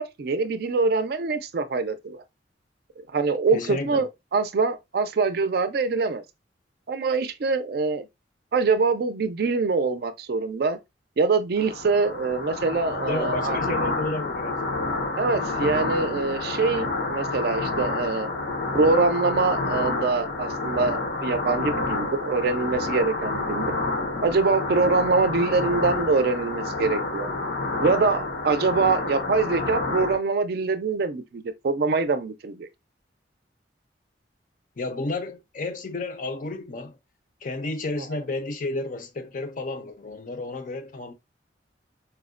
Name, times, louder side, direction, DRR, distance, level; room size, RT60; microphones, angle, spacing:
voice 1, 0.0-2.2 3.1-6.2 6.9-8.1 8.5-10.8 11.2-13.6 15.2-18.3 18.7-23.8 24.2-27.3 27.8-32.7, right 4 dB, 55° right, 0.4 m, -24 dB
voice 2, 3.5-4.0 13.1-14.6 34.8-37.0 37.4-41.1, left 2 dB, 45° left, 0.4 m, -31 dB
sound 1, 11.6-30.2, left 2 dB, 85° left, 0.8 m, -29 dB
4.4 x 2.1 x 2.4 m
head